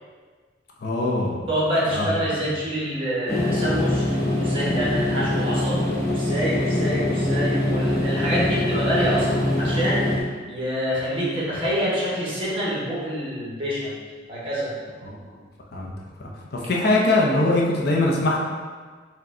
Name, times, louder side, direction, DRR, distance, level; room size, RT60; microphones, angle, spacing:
voice 1, 0.8-1.4 1.9-2.1 15.0-15.2 15.7-15.9 16.2-18.4, left 2 dB, 55° left, -2 dB, 0.6 m, -22 dB
voice 2, 1.5-4.0 4.3-10.0 10.5-13.9 14.3-14.7, equal, 30° right, -7 dB, 1.1 m, -26 dB
sound 1, 3.3-10.2, left 1 dB, 15° left, 0.8 m, -23 dB
4.7 x 2.3 x 3.6 m, 1.5 s
head